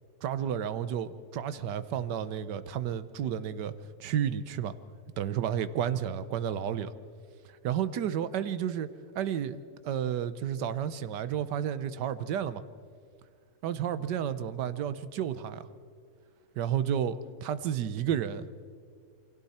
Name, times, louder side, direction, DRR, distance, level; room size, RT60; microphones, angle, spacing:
voice 1, 0.2-3.7 4.0-4.7 5.2-6.9 7.6-8.9 9.1-12.6 13.6-15.7 16.6-17.1 17.4-18.4, right 9 dB, 80° right, 13 dB, 1.5 m, -31 dB
28.5 x 24.0 x 4.3 m, 2.2 s
omnidirectional pair, 1.8 m